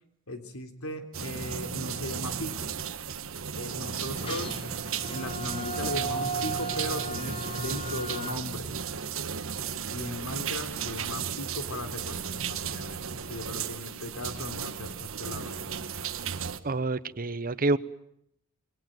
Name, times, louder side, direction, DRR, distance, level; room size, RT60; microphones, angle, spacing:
voice 1, 0.3-2.7 3.4-4.5 5.1-8.7 9.9-16.1, left 1 dB, 85° left, 8 dB, 3.7 m, -38 dB
sound 1, 1.1-16.6, right 7 dB, 65° right, 1.5 m, -35 dB
sound 2, 4.1-8.3, right 2 dB, 25° left, 4.4 m, -36 dB
voice 2, 16.6-17.8, right 2 dB, 45° right, 16 dB, 1.0 m, -27 dB
28.0 x 23.0 x 7.8 m, 0.74 s
head